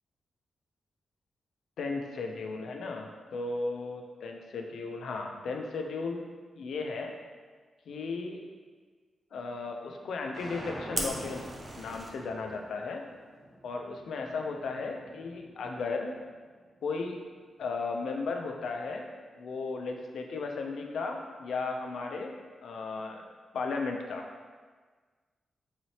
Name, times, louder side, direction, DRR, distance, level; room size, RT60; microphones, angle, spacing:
voice 1, 1.8-6.3 6.6-7.1 7.9-8.4 9.3-11.5 11.7-13.0 13.6-16.1 16.8-17.2 17.6-19.1 19.4-23.3 23.5-24.2, left 4 dB, 80° left, 3 dB, 0.4 m, -35 dB
sound 1, 10.3-16.5, right 1 dB, 45° right, 0.9 m, -47 dB
Fire, 10.9-12.1, right 2 dB, 30° right, 0.4 m, -36 dB
3.9 x 3.1 x 2.8 m, 1.5 s
wide cardioid pair, 175°, 0 cm